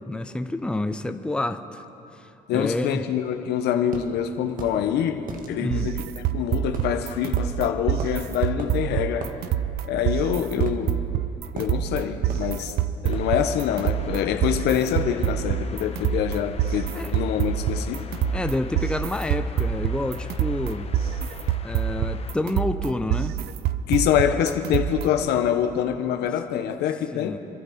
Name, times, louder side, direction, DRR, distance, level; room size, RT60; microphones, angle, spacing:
voice 1, 0.0-1.8 2.1-3.0 5.6-5.9 16.9-17.1 18.3-20.9 21.6-23.3 26.2-26.3 27.1-27.4, left 2 dB, 5° left, 0.6 m, -29 dB
voice 2, 2.5-9.3 9.9-11.0 11.5-12.8 13.0-18.0 23.9-27.4, left 9 dB, 80° left, 1.1 m, -25 dB
sound 1, 3.9-4.1 4.6-4.8 5.3-5.5 6.7-7.0 7.4-7.5 8.0-8.2 8.6-8.8 9.2-9.4 10.7-11.2 11.6-11.8 12.3-12.5 13.1-13.4 13.8-14.1, right 4 dB, 55° right, 1.6 m, -36 dB
sound 2, 5.7-25.3, right 11 dB, 70° right, 0.6 m, -27 dB
sound 3, 13.0-22.3, left 7 dB, 35° left, 0.9 m, -37 dB
28.0 x 11.0 x 4.3 m
cardioid pair, 110°, 17 cm